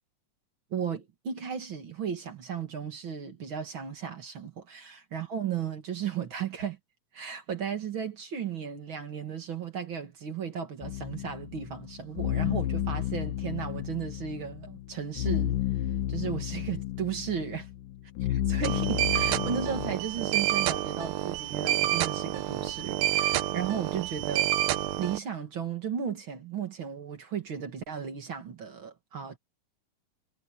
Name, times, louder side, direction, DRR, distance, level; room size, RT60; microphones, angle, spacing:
voice 1, 0.7-6.8 7.1-15.6 16.1-17.7 18.5-24.5 25.0-29.4, right 7 dB, 45° right, 2.1 m, -35 dB
sound 1, 10.8-19.9, left 11 dB, 75° left, 2.5 m, -32 dB
sound 2, 18.6-25.2, right 14 dB, 90° right, 2.7 m, -28 dB
omnidirectional pair, 3.9 m